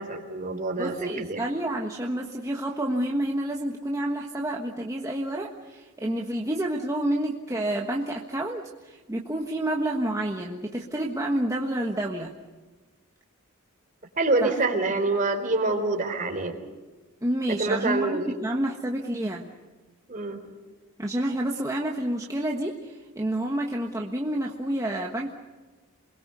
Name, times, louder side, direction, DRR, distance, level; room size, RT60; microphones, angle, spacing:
voice 1, 0.0-1.4 14.2-16.6 17.5-18.3 20.1-20.4, right 3 dB, 35° right, 5 dB, 3.7 m, -26 dB
voice 2, 0.8-12.3 14.4-14.6 17.2-19.5 21.0-25.3, right 1 dB, 15° right, 0 dB, 1.4 m, -29 dB
28.0 x 21.5 x 6.9 m, 1.3 s
head